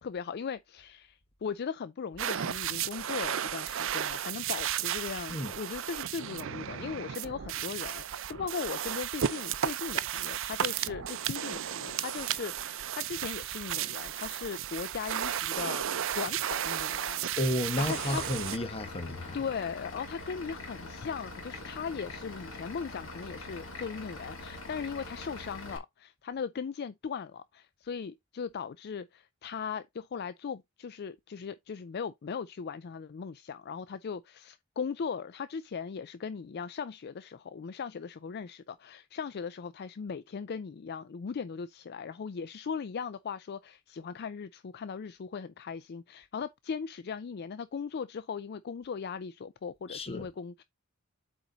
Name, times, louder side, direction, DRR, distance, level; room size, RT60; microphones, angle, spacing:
voice 1, 0.0-15.8 16.1-17.4 17.8-18.2 19.3-50.6, left 6 dB, 50° left, 0.4 m, -38 dB
sound 1, 2.2-18.6, right 10 dB, 65° right, 0.5 m, -34 dB
voice 2, 17.4-19.4 49.9-50.3, left 1 dB, 30° left, 1.1 m, -32 dB
Vehicle / Engine, 17.8-25.8, left 2 dB, 70° left, 2.8 m, -43 dB
8.2 x 4.3 x 3.9 m
head